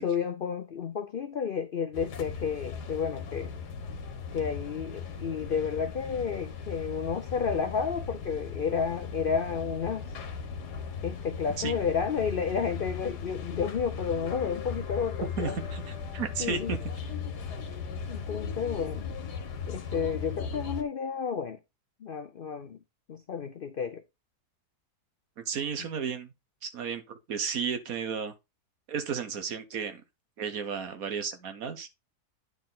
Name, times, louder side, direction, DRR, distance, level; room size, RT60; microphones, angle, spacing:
voice 1, 0.0-3.5 4.3-10.1 11.0-15.6 16.4-16.7 18.1-19.0 19.7-21.6 22.0-22.8 23.1-24.0, left 6 dB, 60° left, 0.5 m, -31 dB
sound 1, 1.9-20.8, left 6 dB, 85° left, 1.8 m, -38 dB
voice 2, 15.4-16.8 25.4-26.3 26.6-28.3 28.9-30.0 30.4-31.9, right 6 dB, 60° right, 1.5 m, -33 dB
9.8 x 4.2 x 3.9 m
omnidirectional pair, 1.7 m